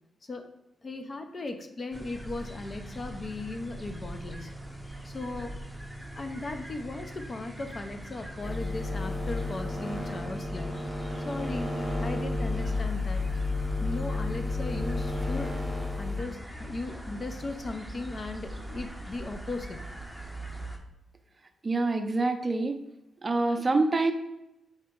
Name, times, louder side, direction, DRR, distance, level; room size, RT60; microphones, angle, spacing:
voice 1, 0.8-4.5 5.0-5.6 6.2-10.8 11.2-11.7 12.0-13.2 13.8-15.5 16.0-19.8, left 2 dB, 40° left, 6 dB, 0.6 m, -37 dB
sound 1, 1.9-20.8, right 1 dB, ahead, 0.7 m, -42 dB
sound 2, 8.4-16.2, left 2 dB, 25° left, 1.1 m, -31 dB
voice 2, 21.6-22.8 23.2-24.1, right 3 dB, 35° right, 6 dB, 0.5 m, -26 dB
4.3 x 2.9 x 3.6 m, 0.90 s
cardioid pair, 65°, 0 cm